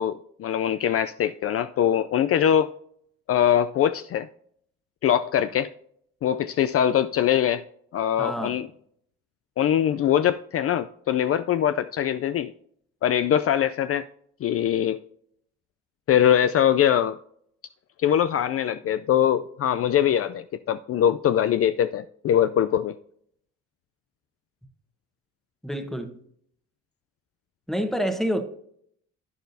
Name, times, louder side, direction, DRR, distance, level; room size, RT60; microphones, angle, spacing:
voice 1, 0.0-2.7 3.3-4.3 5.0-5.7 6.2-7.6 7.9-8.7 9.6-12.5 13.0-14.0 14.4-15.0 16.1-17.2 18.0-23.0, left 10 dB, 50° left, 0.4 m, -22 dB
voice 2, 8.2-8.6 25.6-26.2 27.7-28.4, equal, ahead, 1.2 m, -27 dB
10.5 x 9.3 x 2.7 m
cardioid pair, 90°, 30 cm